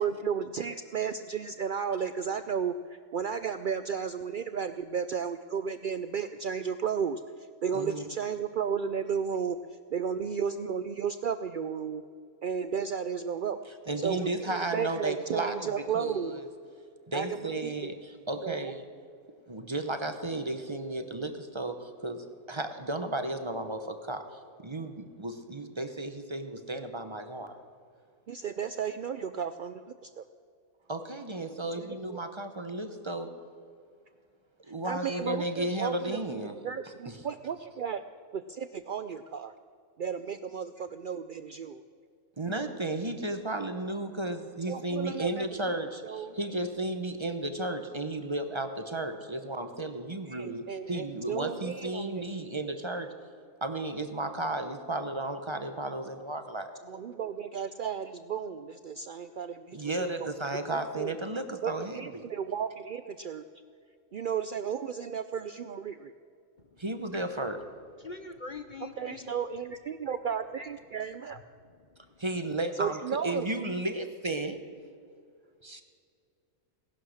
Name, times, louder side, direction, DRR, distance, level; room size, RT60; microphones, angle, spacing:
voice 1, 0.0-9.6 9.9-12.0 12.4-13.6 14.0-16.4 17.1-17.9 18.4-18.7 28.3-30.2 31.8-32.2 34.8-38.0 38.3-39.5 40.0-41.8 44.7-45.5 46.0-46.4 50.2-52.5 56.9-60.3 60.7-61.1 61.6-63.5 64.1-66.1 69.0-71.4 72.7-73.4, right 7 dB, 80° right, 11 dB, 0.4 m, -34 dB
voice 2, 7.7-8.0 13.9-15.7 15.9-16.5 17.1-18.8 19.5-27.6 30.9-33.3 34.7-36.6 37.0-37.2 42.4-53.1 53.6-56.7 59.7-62.2 66.8-67.6 72.2-74.6 75.6-75.8, right 2 dB, 25° right, 7 dB, 0.8 m, -34 dB
voice 3, 68.0-69.3 71.6-72.2, left 4 dB, 45° left, 7 dB, 0.7 m, -44 dB
18.0 x 11.5 x 6.4 m, 2.2 s
omnidirectional pair, 1.5 m